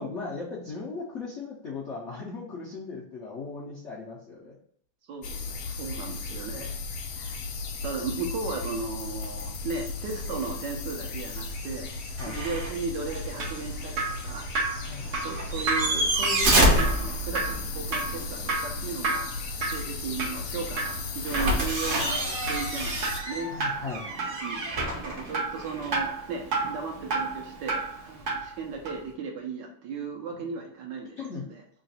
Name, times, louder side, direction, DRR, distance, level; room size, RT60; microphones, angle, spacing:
voice 1, 0.0-4.5 12.2-12.5 14.9-15.2 23.5-24.3 31.2-31.4, left 4 dB, 60° left, -6 dB, 0.7 m, -38 dB
voice 2, 5.1-6.7 7.2-7.4 7.8-12.0 12.2-14.5 15.1-19.3 19.6-23.5 24.4-31.2 31.4-31.6, right 4 dB, 70° right, 1 dB, 1.2 m, -36 dB
sound 1, 5.2-23.2, left 3 dB, 80° left, 1.5 m, -36 dB
sound 2, 12.2-12.8 13.2-13.3 15.4-17.7 21.2-26.0 28.2-28.3, right 1 dB, 50° right, 0.9 m, -27 dB
Drip, 13.1-28.6 28.8-29.0, right 3 dB, 90° right, 0.6 m, -33 dB
3.7 x 2.5 x 4.0 m, 0.62 s
omnidirectional pair, 2.3 m